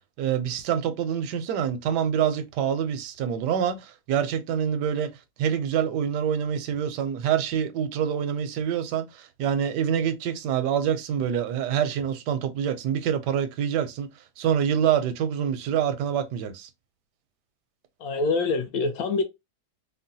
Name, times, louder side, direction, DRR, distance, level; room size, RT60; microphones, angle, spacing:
voice 1, 0.2-5.1 5.4-14.1 14.4-16.7, right 8 dB, 85° right, 1.2 m, -26 dB
voice 2, 18.0-19.2, left 3 dB, 70° left, 1.1 m, -25 dB
3.7 x 2.2 x 2.6 m
omnidirectional pair, 1.8 m